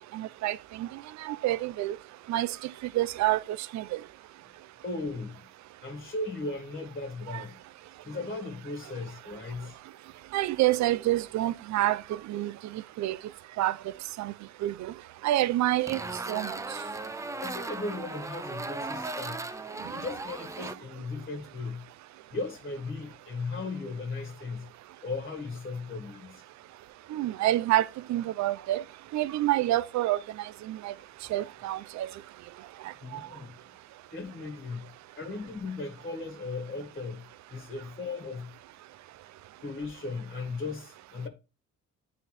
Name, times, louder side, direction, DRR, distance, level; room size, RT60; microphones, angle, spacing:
voice 1, 0.1-0.9 1.2-2.0 2.3-4.0 7.3-7.4 10.3-13.2 13.6-13.8 14.2-14.3 14.6-14.9 15.2-16.0 16.3-16.6 27.1-28.8 29.1-30.9 31.3-32.1, right 15 dB, 70° right, 0.5 m, -28 dB
voice 2, 4.8-5.4 5.8-7.6 8.0-9.8 17.4-19.5 19.9-21.8 22.3-24.7 25.0-26.4 31.0-31.1 33.0-33.6 34.1-38.5 39.6-41.3, left 3 dB, 30° left, 1.6 m, -37 dB
sound 1, 15.9-20.7, right 3 dB, 10° right, 0.4 m, -37 dB
9.3 x 3.5 x 2.9 m
cardioid pair, 90°, 30 cm